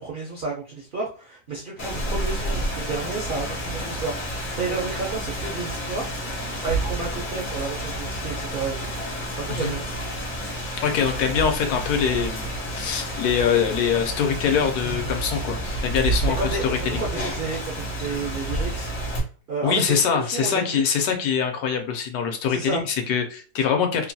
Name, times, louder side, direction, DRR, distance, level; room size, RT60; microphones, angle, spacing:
voice 1, 0.0-6.1 6.6-8.9 9.3-9.9 16.2-18.9 19.5-19.8 20.1-20.8 22.5-22.8, right 4 dB, 70° right, -2 dB, 0.5 m, -31 dB
Rain, 1.8-19.2, right 1 dB, 45° left, 0.7 m, -29 dB
voice 2, 10.8-17.0 19.6-24.1, left 7 dB, 75° left, 4 dB, 1.1 m, -24 dB
2.9 x 2.2 x 2.6 m, 0.39 s
omnidirectional pair, 1.7 m